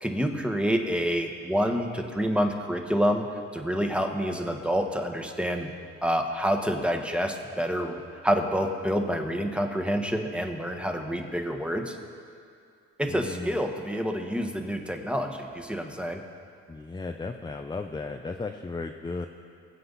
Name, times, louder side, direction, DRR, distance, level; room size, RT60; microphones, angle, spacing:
voice 1, 0.0-3.2 3.5-5.8 6.0-12.0 13.0-16.2, equal, 5° right, 4 dB, 1.3 m, -28 dB
voice 2, 13.1-13.6 16.7-19.3, left 3 dB, 15° left, 5 dB, 0.6 m, -35 dB
23.5 x 7.8 x 4.0 m, 2.3 s
cardioid pair, 90°, 30 cm